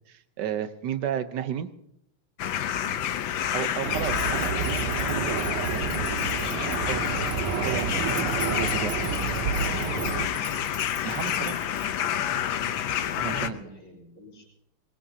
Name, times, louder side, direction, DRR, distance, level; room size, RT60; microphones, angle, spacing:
voice 1, 0.1-1.7 3.5-8.9 11.0-11.6 13.2-13.6, right 9 dB, 60° right, 11 dB, 1.4 m, -34 dB
sound 1, 2.4-13.5, left 10 dB, 70° left, 1.5 m, -29 dB
voice 2, 3.3-4.3 8.4-10.7 13.2-14.6, equal, 40° left, -4 dB, 5.1 m, -45 dB
sound 2, 3.8-12.1, right 1 dB, 25° right, 1.7 m, -43 dB
sound 3, 3.8-10.3, right 8 dB, 85° right, 1.7 m, -30 dB
23.0 x 21.0 x 2.8 m, 0.75 s
omnidirectional pair, 2.4 m